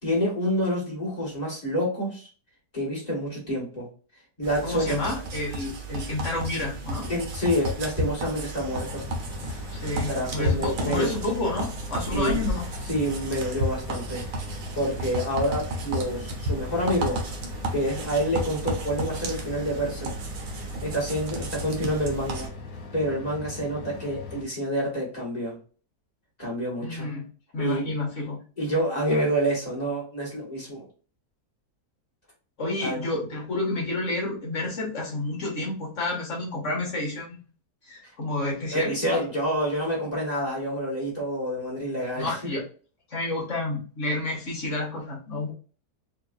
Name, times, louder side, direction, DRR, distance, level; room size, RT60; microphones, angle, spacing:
voice 1, 0.0-2.3 2.7-3.9 4.4-5.0 7.1-9.1 9.4-9.6 10.1-11.1 12.1-12.4 12.9-14.3 14.7-17.2 17.7-20.1 20.8-22.5 22.9-25.6 26.4-27.1 27.6-27.8 28.6-30.8 32.8-33.1 38.7-42.3, equal, 25° left, -4 dB, 1.7 m, -28 dB
sound 1, 4.4-22.5, right 1 dB, 60° right, 1.2 m, -33 dB
voice 2, 4.6-7.1 9.7-12.6 26.8-27.3 27.5-28.4 32.6-37.4 37.9-39.2 42.1-42.6 43.1-45.5, left 2 dB, 50° left, -2 dB, 1.5 m, -30 dB
sound 2, 8.7-24.4, left 4 dB, 80° left, 1.5 m, -40 dB
4.5 x 2.6 x 2.4 m, 0.38 s
omnidirectional pair, 1.7 m